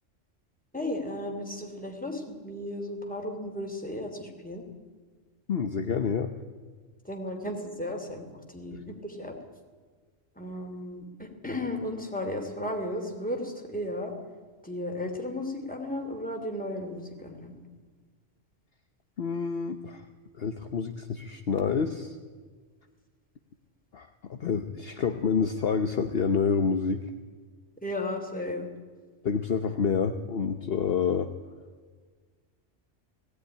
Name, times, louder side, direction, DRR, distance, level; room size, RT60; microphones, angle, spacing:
voice 1, 0.7-4.6 7.1-8.2 8.5-9.3 10.4-11.0 11.4-14.1 14.6-17.6 27.8-28.7, left 1 dB, 5° left, 2 dB, 3.0 m, -34 dB
voice 2, 5.5-6.3 8.7-8.8 19.2-20.0 20.4-22.2 23.9-27.1 29.2-31.3, left 6 dB, 55° left, 7 dB, 1.1 m, -28 dB
18.5 x 16.5 x 9.9 m, 1.5 s
omnidirectional pair, 1.3 m